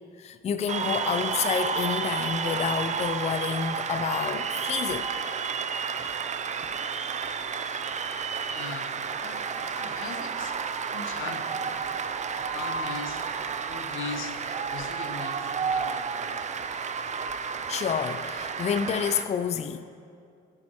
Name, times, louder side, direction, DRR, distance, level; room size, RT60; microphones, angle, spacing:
voice 1, 0.2-5.1 17.7-19.8, left 7 dB, 35° left, 0.3 m, -29 dB
Cheering / Applause, 0.7-19.2, right 6 dB, 35° right, 0.5 m, -31 dB
voice 2, 8.5-10.6 10.8-11.8 12.4-13.2 13.6-14.4 14.7-16.4, left 5 dB, 85° left, 0.8 m, -40 dB
13.5 x 7.6 x 3.0 m
cardioid pair, 90°, 20 cm